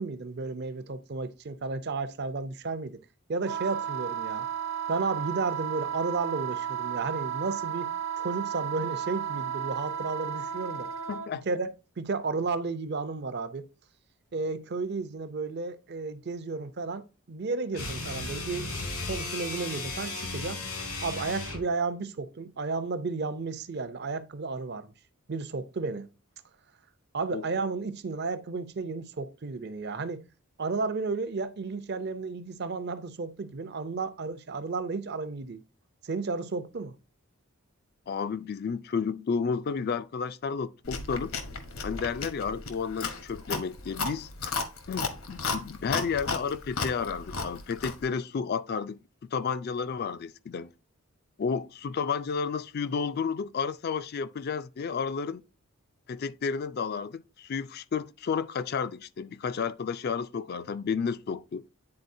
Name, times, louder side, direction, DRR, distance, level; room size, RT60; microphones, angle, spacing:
voice 1, 0.0-3.0 3.3-4.5 4.9-7.9 8.2-10.9 11.4-11.7 12.0-13.7 14.3-18.7 19.0-20.6 21.0-24.9 25.3-26.1 27.1-30.2 30.6-35.6 36.0-37.0, right 4 dB, 50° right, 0.5 m, -33 dB
Wind instrument woodwind instrument, 3.4-11.3, right 9 dB, 65° right, 0.9 m, -33 dB
voice 2, 11.1-11.4 27.3-27.5 38.1-41.3 41.8-44.5 44.9-49.0 49.3-50.7 51.4-55.4 56.1-61.6, left 6 dB, 45° left, 0.3 m, -32 dB
sound 1, 17.7-21.7, left 2 dB, 90° left, 2.2 m, -35 dB
Chewing mastication, 40.9-48.1, left 4 dB, 70° left, 0.9 m, -34 dB
9.6 x 4.1 x 2.6 m
head